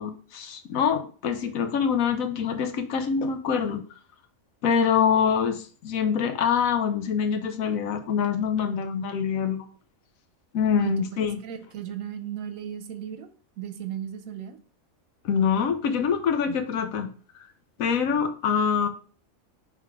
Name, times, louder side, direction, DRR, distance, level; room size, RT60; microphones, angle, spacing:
voice 1, 0.0-3.8 4.6-9.7 10.5-11.4 15.2-17.1 17.8-18.9, left 7 dB, 75° left, 8 dB, 1.2 m, -25 dB
voice 2, 11.4-13.3 13.6-14.6 16.5-16.6, right 9 dB, 75° right, 9 dB, 1.1 m, -35 dB
5.7 x 3.6 x 4.7 m, 0.41 s
omnidirectional pair, 1.5 m